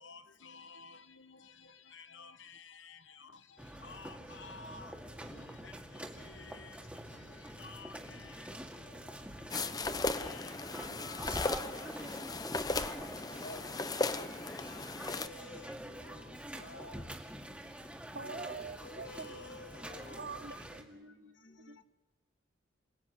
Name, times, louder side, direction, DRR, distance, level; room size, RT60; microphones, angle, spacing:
voice 1, 0.0-1.4 1.9-3.0 3.8-4.9 5.6-5.7 6.3-6.7 7.6-8.3 10.0-11.5 13.4-13.6 14.5-14.8 15.1-15.7 16.1-16.2 16.6-17.0 18.8-20.2, left 3 dB, 75° left, 1.6 m, -51 dB
sound 1, 3.6-20.8, right 1 dB, 5° right, 2.1 m, -46 dB
sound 2, 9.5-15.3, left 3 dB, 20° left, 0.9 m, -36 dB
voice 2, 18.1-19.3 20.2-21.8, right 4 dB, 55° right, 0.9 m, -46 dB
voice 3, 21.0-21.8, equal, 35° left, 2.1 m, -65 dB
27.5 x 18.5 x 9.8 m
head